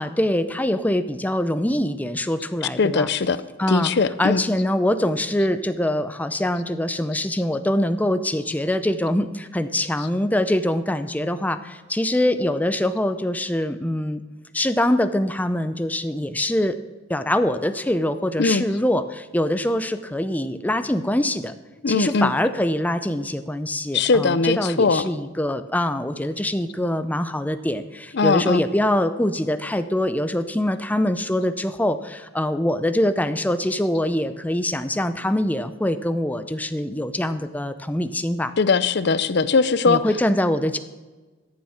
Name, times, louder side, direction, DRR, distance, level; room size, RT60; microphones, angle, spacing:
voice 1, 0.0-3.1 3.6-3.9 4.2-14.2 14.5-16.8 17.1-21.5 21.9-38.5 39.9-40.8, left 1 dB, 10° left, 10 dB, 0.5 m, -24 dB
voice 2, 2.6-3.4 3.7-4.4 10.0-10.1 18.4-18.6 21.8-22.3 23.9-25.1 28.1-28.6 38.6-40.2, left 4 dB, 55° left, 15 dB, 0.6 m, -20 dB
13.0 x 7.2 x 6.3 m, 1.3 s
head